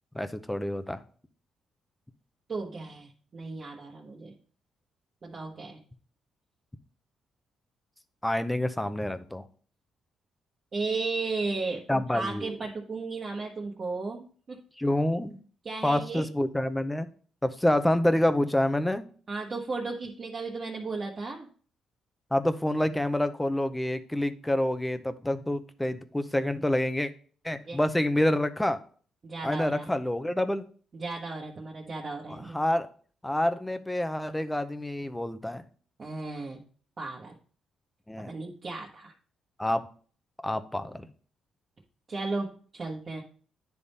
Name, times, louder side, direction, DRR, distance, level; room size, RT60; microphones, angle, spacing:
voice 1, 0.1-1.0 8.2-9.4 11.9-12.5 14.8-15.4 15.8-17.1 17.4-19.0 22.3-27.1 27.4-28.8 29.4-30.7 32.5-32.9 33.2-35.6 38.1-38.3 39.6-39.8 40.4-41.1, left 1 dB, 10° left, 11 dB, 0.7 m, -27 dB
voice 2, 2.5-4.4 5.2-5.8 10.7-14.6 15.6-16.3 19.3-21.5 27.7-27.8 29.2-29.9 30.9-32.6 36.0-36.6 37.0-37.4 38.2-39.1 42.1-43.2, right 3 dB, 40° right, -2 dB, 1.1 m, -35 dB
10.0 x 3.6 x 4.1 m, 0.43 s
cardioid pair, 90°, 0 cm